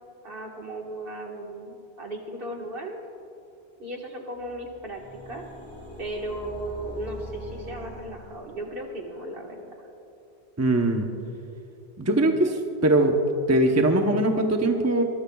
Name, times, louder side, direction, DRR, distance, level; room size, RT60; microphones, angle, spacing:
voice 1, 0.2-3.0 3.8-5.4 6.0-9.7, right 1 dB, 60° right, 0 dB, 1.8 m, -36 dB
sound 1, 4.4-9.0, equal, 15° left, 2.2 m, -42 dB
voice 2, 10.6-11.1 12.0-13.2 13.5-15.0, right 1 dB, 15° right, 3 dB, 0.8 m, -21 dB
23.5 x 20.5 x 2.3 m, 2.7 s
omnidirectional pair, 1.1 m